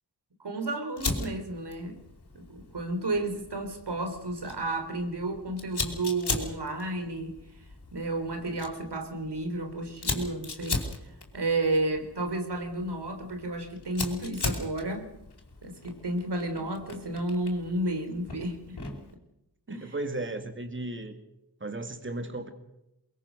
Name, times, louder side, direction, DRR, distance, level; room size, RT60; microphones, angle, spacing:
voice 1, 0.4-2.0 2.3-7.4 7.9-10.9 11.3-15.1 15.6-18.8 19.7-19.9, right 2 dB, 70° right, 6 dB, 3.8 m, -32 dB
Fire, 1.0-19.1, left 3 dB, 70° left, 4.8 m, -38 dB
voice 2, 19.7-21.2 21.6-22.5, right 2 dB, 30° right, 7 dB, 2.4 m, -35 dB
23.0 x 22.0 x 6.4 m, 0.86 s
cardioid pair, 55°, 41 cm